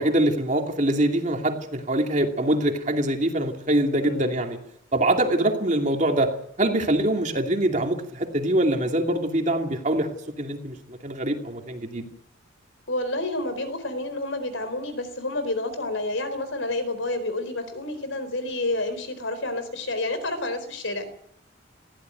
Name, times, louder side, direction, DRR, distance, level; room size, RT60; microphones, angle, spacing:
voice 1, 0.0-4.6 4.9-6.3 6.6-12.0, right 1 dB, 35° right, 3 dB, 2.6 m, -24 dB
voice 2, 4.0-4.4 12.9-21.1, left 2 dB, 75° left, 11 dB, 4.1 m, -29 dB
21.0 x 15.0 x 9.3 m, 0.74 s
head